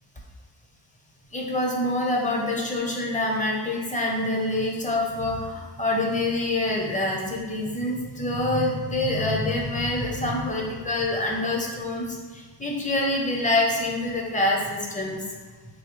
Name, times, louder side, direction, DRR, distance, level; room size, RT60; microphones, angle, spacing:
voice 1, 1.3-12.2 12.6-15.2, left 1 dB, 15° left, -1 dB, 0.7 m, -26 dB
3.9 x 2.7 x 3.1 m, 1.4 s
cardioid pair, 70°, 44 cm